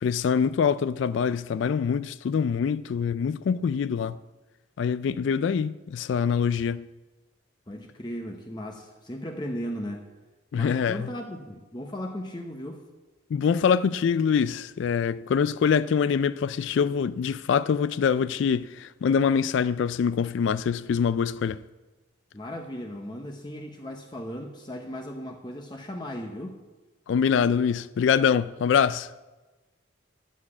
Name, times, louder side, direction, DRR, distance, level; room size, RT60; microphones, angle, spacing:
voice 1, 0.0-4.2 4.8-6.9 10.5-11.1 13.3-21.6 27.1-29.1, left 6 dB, 75° left, 0.3 m, -24 dB
voice 2, 7.7-10.1 10.5-12.8 22.3-26.6, equal, 20° left, 0.8 m, -36 dB
10.5 x 7.3 x 8.4 m
head